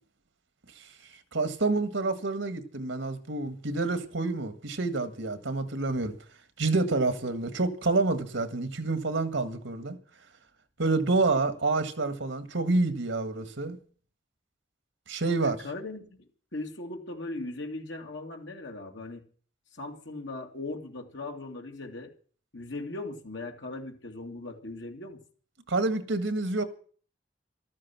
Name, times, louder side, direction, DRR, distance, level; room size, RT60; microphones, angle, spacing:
voice 1, 1.3-6.1 6.6-10.0 10.8-13.8 15.1-15.6 25.7-26.6, right 3 dB, 80° right, 1.7 m, -28 dB
voice 2, 15.4-16.2 16.5-19.2 19.7-22.1 22.5-25.2, left 2 dB, 75° left, 2.5 m, -39 dB
14.0 x 13.0 x 6.0 m
head